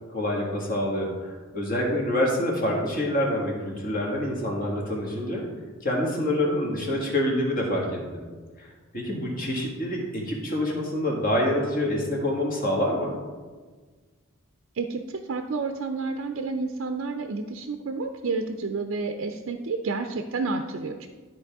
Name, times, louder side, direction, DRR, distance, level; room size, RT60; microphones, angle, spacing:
voice 1, 0.1-5.5 5.8-8.2 8.6-13.1, left 1 dB, 40° left, -1 dB, 1.7 m, -26 dB
voice 2, 14.8-21.1, right 4 dB, 70° right, 5 dB, 0.5 m, -30 dB
12.5 x 4.4 x 3.5 m, 1.4 s
head